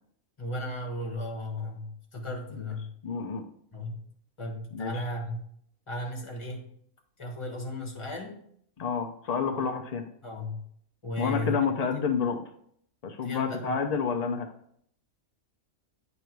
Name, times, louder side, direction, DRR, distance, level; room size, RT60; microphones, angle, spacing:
voice 1, 0.4-2.9 3.7-4.0 4.4-5.5 5.9-6.7 7.2-8.4 9.5-9.7 10.2-10.6 11.0-11.6 13.2-13.7, left 1 dB, 20° left, 1 dB, 1.1 m, -35 dB
voice 2, 3.0-3.4 4.7-4.9 8.8-10.0 11.2-12.4 13.0-14.5, left 6 dB, 85° left, 5 dB, 0.3 m, -29 dB
9.1 x 3.2 x 4.5 m, 0.67 s
omnidirectional pair, 1.5 m